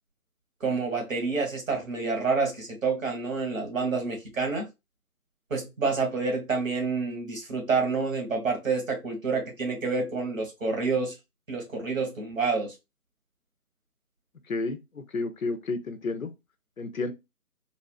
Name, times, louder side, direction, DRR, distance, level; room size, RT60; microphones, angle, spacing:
voice 1, 0.6-4.7 5.5-11.2 11.5-12.7, right 4 dB, 60° right, 1.7 m, -28 dB
voice 2, 14.5-16.3 16.8-17.1, left 3 dB, 65° left, 0.7 m, -31 dB
4.0 x 2.1 x 2.4 m
figure-of-eight pair, 155°, 45 cm